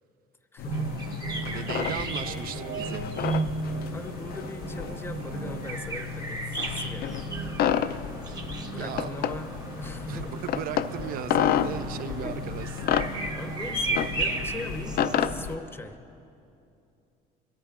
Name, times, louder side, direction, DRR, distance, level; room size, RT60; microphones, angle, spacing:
voice 1, 0.5-1.0 1.3-2.1 3.9-7.3 8.7-9.5 9.8-10.4 11.9-12.4 13.3-16.0, left 2 dB, 15° left, 7 dB, 0.7 m, -40 dB
sound 1, 0.6-15.6, left 9 dB, 65° left, 0.5 m, -31 dB
sound 2, 0.6-15.5, right 4 dB, 85° right, 1.1 m, -38 dB
sound 3, 0.7-15.2, right 2 dB, 25° right, 0.9 m, -37 dB
voice 2, 1.4-3.4 8.8-9.1 10.1-12.7, right 11 dB, 60° right, 14 dB, 0.4 m, -37 dB
23.0 x 13.5 x 2.4 m, 2.6 s
cardioid pair, 110°, 17 cm